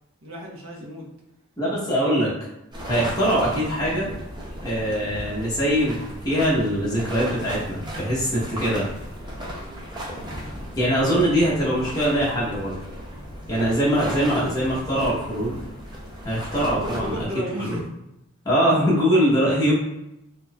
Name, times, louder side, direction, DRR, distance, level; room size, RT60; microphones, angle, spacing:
voice 1, 0.2-1.1 1.9-2.2 10.9-11.5 16.7-17.8, left 1 dB, 80° right, -3 dB, 1.1 m, -35 dB
voice 2, 1.6-2.3 2.9-4.1 4.6-8.9 10.7-12.8 13.5-15.6 16.2-17.2 17.6-17.8 18.4-19.7, equal, 20° left, -7 dB, 1.0 m, -22 dB
sound 1, 2.7-17.2, equal, 20° right, 0.6 m, -35 dB
4.0 x 2.7 x 2.4 m, 0.89 s
head